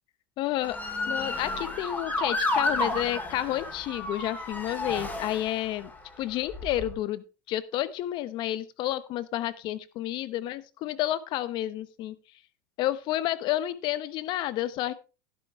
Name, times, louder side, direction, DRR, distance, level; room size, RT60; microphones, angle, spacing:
voice 1, 0.4-0.8 1.1-5.9 6.2-12.1 12.8-14.9, left 14 dB, 50° left, 15 dB, 1.1 m, -30 dB
Motor vehicle (road) / Siren, 0.6-5.9 6.5-6.9, left 2 dB, 15° left, 3.2 m, -31 dB
12.0 x 11.5 x 3.3 m, 0.32 s
supercardioid pair, 115°, 10 cm